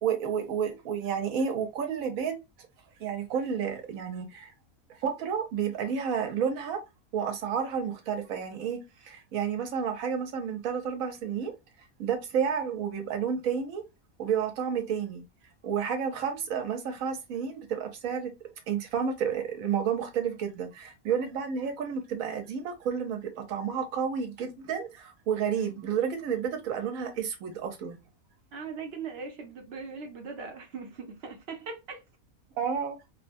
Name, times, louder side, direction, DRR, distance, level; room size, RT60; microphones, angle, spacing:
voice 1, 0.0-2.4 3.0-4.5 5.0-6.8 7.1-11.5 12.0-13.8 14.2-15.2 15.6-18.3 18.7-28.0 32.6-33.0, right 7 dB, 75° right, 1.1 m, -31 dB
voice 2, 28.5-32.0, right 5 dB, 55° right, 0.8 m, -40 dB
3.0 x 2.1 x 2.5 m
omnidirectional pair, 1.5 m